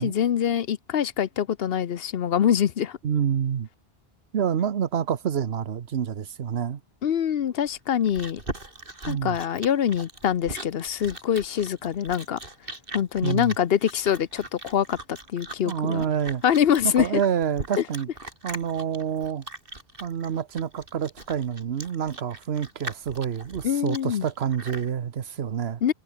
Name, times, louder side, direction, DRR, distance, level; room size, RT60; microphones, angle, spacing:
voice 1, 0.0-3.0 7.0-8.4 9.1-12.4 12.9-16.1 16.4-17.2 17.8-17.9 23.6-24.2 25.8-25.9, left 9 dB, 65° left, 1.0 m, -24 dB
voice 2, 3.0-3.7 4.3-6.8 9.1-9.4 13.2-13.5 15.7-16.4 16.8-18.1 18.4-19.4 20.0-25.8, right 8 dB, 75° right, 1.2 m, -27 dB
Chewing mastication, 7.7-24.9, right 2 dB, 60° right, 4.7 m, -40 dB
omnidirectional pair, 1.1 m